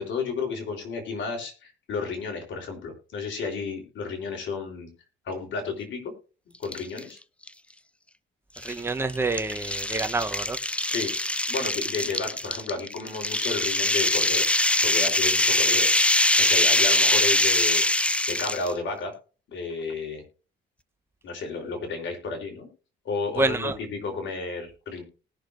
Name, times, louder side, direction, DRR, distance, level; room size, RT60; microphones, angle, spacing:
voice 1, 0.0-4.9 5.3-6.1 6.6-7.2 10.9-11.1 11.5-14.5 14.8-15.9 16.4-19.1 19.5-20.2 21.2-22.7 23.1-25.0, left 4 dB, 70° left, 3.6 m, -32 dB
sound 1, 6.6-7.0 7.5-7.6 8.6-18.7, left 1 dB, 5° left, 0.4 m, -23 dB
voice 2, 8.6-10.6 23.4-23.8, right 3 dB, 10° right, 0.9 m, -27 dB
19.0 x 6.4 x 2.5 m
cardioid pair, 90°, 20 cm